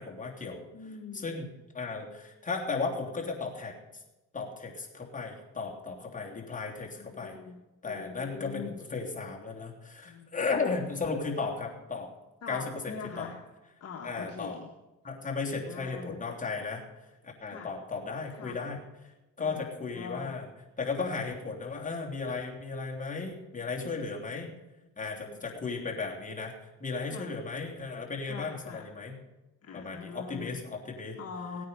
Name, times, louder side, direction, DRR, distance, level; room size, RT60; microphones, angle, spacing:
voice 1, 0.0-0.6 1.2-1.5 1.7-3.8 4.3-7.4 7.8-12.1 12.5-13.3 14.0-14.6 15.0-16.8 17.4-18.8 19.4-20.5 20.8-24.5 25.0-26.5 26.8-29.2 29.7-31.2, left 4 dB, 25° left, -1 dB, 3.1 m, -35 dB
voice 2, 0.7-1.4 6.9-7.6 7.8-8.7 10.0-10.3 12.4-13.4 13.8-14.7 15.4-16.2 17.5-17.7 18.3-18.6 19.4-20.3 25.2-25.5 27.1-27.3 28.3-28.9 29.6-30.5 31.2-31.6, left 6 dB, 55° left, 0 dB, 1.4 m, -43 dB
17.0 x 9.3 x 5.6 m, 1.0 s
cardioid pair, 90°, 30 cm